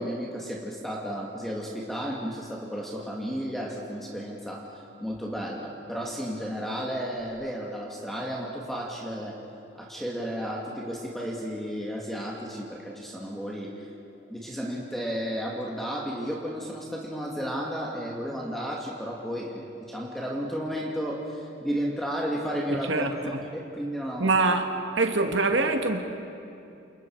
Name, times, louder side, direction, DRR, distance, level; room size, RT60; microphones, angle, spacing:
voice 1, 0.0-4.7 5.0-9.4 9.7-13.9 14.3-24.3, equal, ahead, 2.1 m, -33 dB
voice 2, 24.2-24.7 25.0-26.0, right 3 dB, 85° right, 1.9 m, -23 dB
29.0 x 28.5 x 4.7 m
head